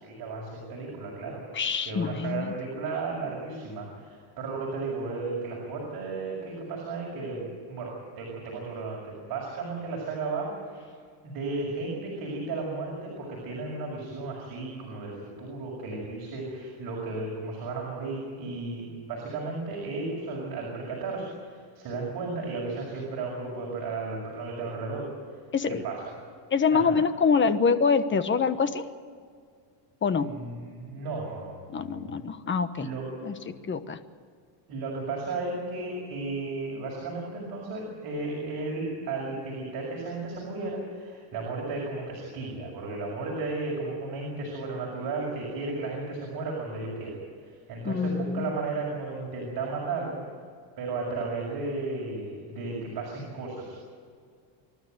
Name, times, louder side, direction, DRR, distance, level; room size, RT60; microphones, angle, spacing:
voice 1, 0.0-1.4 1.9-7.4 7.7-10.9 11.2-25.1 25.7-26.0 26.7-26.9 30.2-32.1 32.8-33.1 34.7-47.2 47.5-50.2 50.8-53.8, right 3 dB, 45° right, -2 dB, 6.5 m, -34 dB
voice 2, 1.5-2.5 25.5-25.8 26.5-28.8 30.0-30.3 31.7-32.9 33.2-34.0 47.8-48.5, left 5 dB, 25° left, 11 dB, 1.1 m, -25 dB
26.5 x 12.5 x 9.4 m, 2.1 s
cardioid pair, 140°, 50 cm